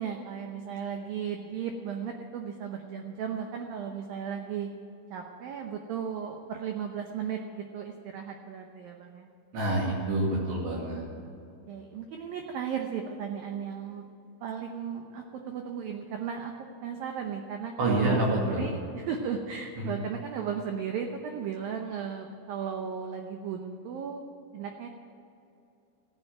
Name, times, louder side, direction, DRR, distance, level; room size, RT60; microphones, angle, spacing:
voice 1, 0.0-4.7 5.1-9.3 11.2-11.3 11.7-14.1 14.4-16.5 16.8-24.2 24.5-24.9, right 7 dB, 85° right, 3 dB, 2.0 m, -35 dB
voice 2, 9.5-11.1 17.8-18.6 19.8-19.9, right 2 dB, 65° right, -4 dB, 4.3 m, -27 dB
15.5 x 9.9 x 8.9 m, 2.7 s
omnidirectional pair, 5.5 m